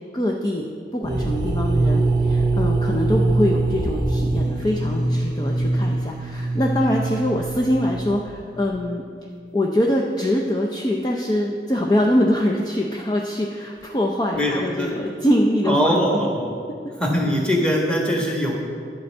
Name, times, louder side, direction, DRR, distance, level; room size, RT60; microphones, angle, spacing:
voice 1, 0.1-0.6 0.9-9.0 9.5-16.3, left 1 dB, 25° left, -1 dB, 0.6 m, -23 dB
sound 1, 1.0-8.8, right 2 dB, 25° right, 0.7 m, -23 dB
voice 2, 14.3-14.9 15.6-16.5 17.0-18.5, equal, 5° left, -1 dB, 1.4 m, -21 dB
11.5 x 4.4 x 7.2 m, 2.2 s
head